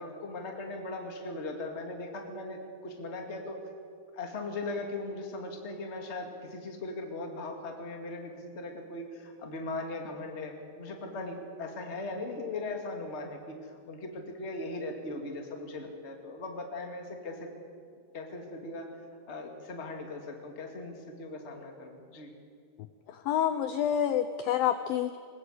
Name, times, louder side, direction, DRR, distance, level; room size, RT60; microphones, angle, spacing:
voice 1, 0.0-3.6 4.1-17.5 17.9-18.9 19.3-22.3, left 2 dB, 25° left, 3 dB, 1.5 m, -39 dB
voice 2, 23.1-25.2, left 9 dB, 85° left, 10 dB, 2.0 m, -28 dB
22.0 x 20.0 x 8.1 m, 2.2 s
omnidirectional pair, 5.1 m